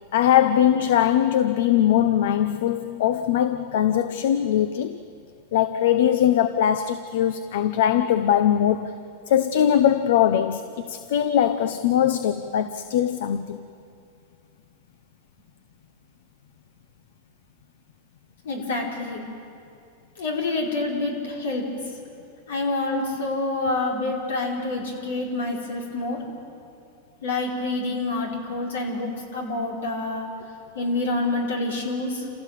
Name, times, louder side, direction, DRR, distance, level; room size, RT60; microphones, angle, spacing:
voice 1, 0.1-5.0 5.5-8.9 9.3-13.6, left 10 dB, 75° left, 0.8 m, -21 dB
voice 2, 18.4-19.2 20.2-21.6 22.5-26.2 27.2-30.3 30.7-32.2, left 2 dB, 90° left, 4.9 m, -27 dB
28.0 x 16.0 x 7.6 m
hypercardioid pair, 125°, 0 cm